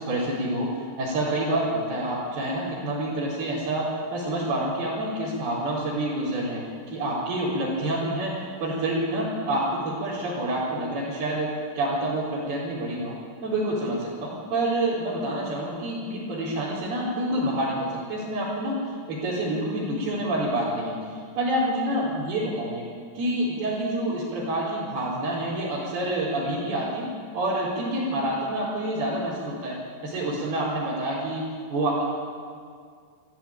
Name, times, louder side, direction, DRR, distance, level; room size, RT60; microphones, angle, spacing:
voice 1, 0.0-3.8 4.1-8.3 8.6-11.5 11.8-13.2 13.4-22.9 23.1-27.0 27.3-29.7 30.0-31.4 31.7-32.0, right 1 dB, 50° right, -9 dB, 6.2 m, -27 dB
27.0 x 15.5 x 9.0 m, 2.2 s
omnidirectional pair, 5.8 m